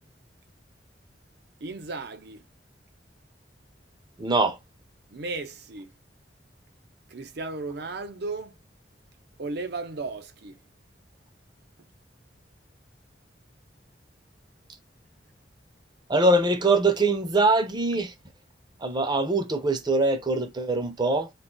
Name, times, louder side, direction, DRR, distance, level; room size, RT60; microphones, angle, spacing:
voice 1, 1.6-2.4 5.1-5.9 7.1-8.5 9.4-10.6, right 3 dB, 65° right, 0.6 m, -35 dB
voice 2, 4.2-4.6 16.1-18.1 18.8-21.3, right 2 dB, 25° right, 0.6 m, -23 dB
2.5 x 2.3 x 3.8 m
head